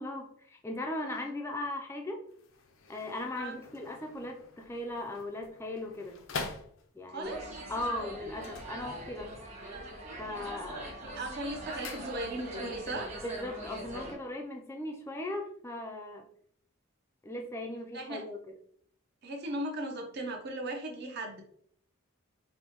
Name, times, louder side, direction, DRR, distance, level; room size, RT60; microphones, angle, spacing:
voice 1, 0.0-2.3 2.9-6.2 6.9-7.4 7.7-9.3 10.2-10.9 13.2-16.3 17.2-18.5, left 1 dB, 10° left, 1 dB, 0.4 m, -38 dB
sound 1, 2.2-7.3 8.3-9.4 9.7-10.2 10.6-12.7 12.9-13.0, left 4 dB, 70° left, 0.5 m, -45 dB
voice 2, 7.1-7.6 11.0-13.1 17.9-18.2 19.2-21.4, right 1 dB, 50° right, 1 dB, 0.7 m, -37 dB
sound 2, 7.2-14.1, right 1 dB, 35° right, 1.1 m, -42 dB
5.2 x 2.1 x 2.9 m, 0.63 s
head